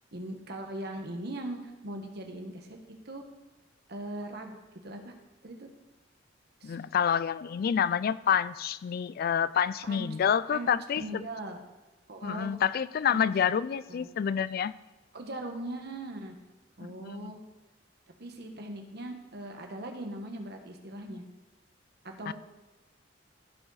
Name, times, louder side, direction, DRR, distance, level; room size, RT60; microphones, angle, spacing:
voice 1, 0.1-1.6 1.8-2.8 3.0-3.2 3.9-4.5 4.8-5.1 5.4-5.7 6.6-6.8 9.8-10.1 10.5-10.7 11.0-11.6 12.1-12.5 13.1-13.2 13.9-14.1 15.1-16.3 16.8-17.4 18.2-21.2 22.0-22.3, right 1 dB, 60° right, 4 dB, 1.3 m, -39 dB
voice 2, 6.6-11.2 12.2-14.7 16.8-17.3 22.3-22.4, left 8 dB, 50° left, 17 dB, 0.3 m, -28 dB
15.5 x 5.2 x 4.1 m, 1.1 s
head